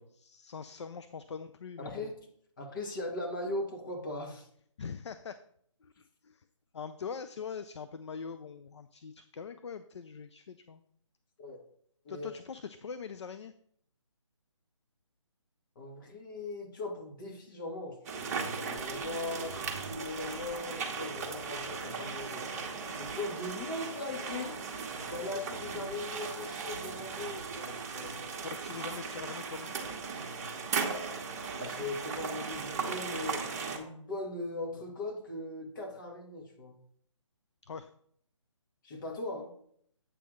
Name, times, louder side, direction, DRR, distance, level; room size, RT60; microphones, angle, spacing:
voice 1, 0.1-2.1 4.8-5.4 5.8-6.4 6.7-10.8 12.1-13.5 28.4-30.0 37.6-37.9, left 6 dB, 60° left, 11 dB, 0.5 m, -43 dB
voice 2, 1.8-2.1 2.6-4.5 11.4-11.6 12.0-12.3 15.8-19.6 19.9-22.5 23.0-24.6 25.1-28.3 30.4-30.7 31.6-33.4 33.7-36.8 38.8-39.5, left 2 dB, 40° left, 1 dB, 2.1 m, -39 dB
sound 1, 18.0-33.8, right 5 dB, 30° right, 1.3 m, -37 dB
sound 2, 18.7-26.1, right 1 dB, 15° left, 2.0 m, -51 dB
8.2 x 3.7 x 6.3 m, 0.65 s
figure-of-eight pair, 155°, 16 cm